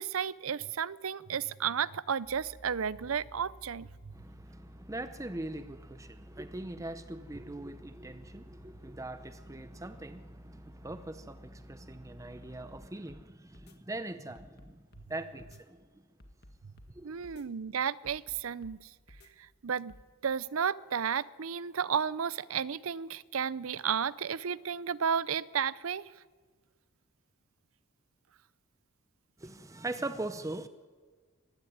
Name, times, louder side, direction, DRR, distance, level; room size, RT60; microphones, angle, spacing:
voice 1, 0.0-3.9 17.0-18.8 19.6-19.9 20.2-26.0, right 7 dB, 75° right, 0.6 m, -32 dB
sound 1, 2.2-12.9, equal, 30° left, 2.5 m, -54 dB
voice 2, 4.1-16.0 16.9-17.1 29.4-30.7, right 2 dB, 15° right, 0.7 m, -41 dB
sound 2, 12.7-13.2 13.5-13.8 14.4-15.1 15.4-15.6 16.2-16.9 17.2-17.5 18.0-18.8 19.1-19.3 19.9-20.1, left 1 dB, 50° left, 1.9 m, -54 dB
24.0 x 15.5 x 9.4 m
head